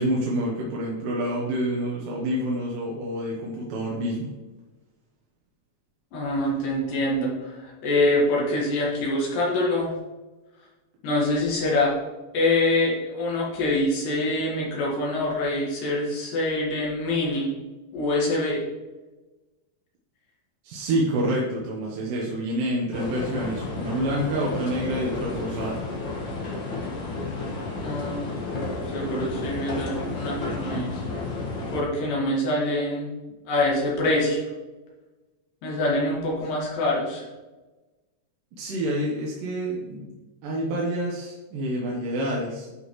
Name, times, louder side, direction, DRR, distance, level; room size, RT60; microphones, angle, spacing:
voice 1, 0.0-4.3 20.6-25.8 38.6-40.1 40.4-42.7, right 1 dB, 75° right, -4 dB, 2.8 m, -28 dB
voice 2, 6.1-9.9 11.0-11.9 12.3-17.5 17.9-18.6 27.8-28.2 28.9-31.0 31.7-33.1 33.5-34.4 35.6-37.2, left 1 dB, 75° left, -4 dB, 3.5 m, -25 dB
sound 1, 22.9-31.8, left 3 dB, 40° left, 2.0 m, -32 dB
11.5 x 6.2 x 3.1 m, 1.2 s
omnidirectional pair, 3.9 m